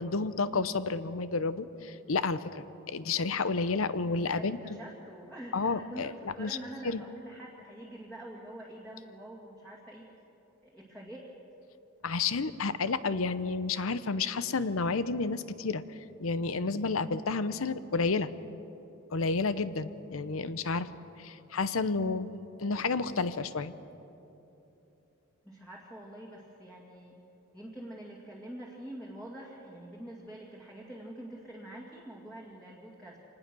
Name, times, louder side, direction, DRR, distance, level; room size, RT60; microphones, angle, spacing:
voice 1, 0.0-4.6 5.5-6.1 6.4-6.6 6.8-7.0 12.0-18.3 19.1-20.9 21.2-23.7, left 4 dB, 80° left, 14 dB, 0.8 m, -31 dB
voice 2, 4.3-10.1 10.6-11.3 25.4-27.2 27.5-33.2, right 1 dB, 5° left, -4 dB, 2.1 m, -46 dB
25.5 x 19.5 x 6.2 m, 3.0 s
head